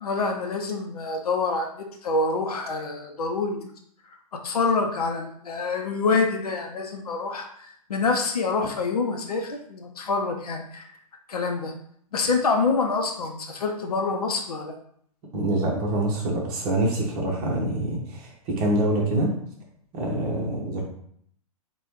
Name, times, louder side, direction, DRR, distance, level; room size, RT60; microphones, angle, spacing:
voice 1, 0.0-3.7 4.3-10.9 11.3-11.7 12.1-14.7, left 4 dB, 75° left, 3 dB, 0.5 m, -26 dB
voice 2, 15.3-19.4 19.9-20.8, right 1 dB, 35° right, -2 dB, 0.8 m, -25 dB
3.1 x 2.2 x 3.0 m, 0.65 s
figure-of-eight pair, 115°, 19 cm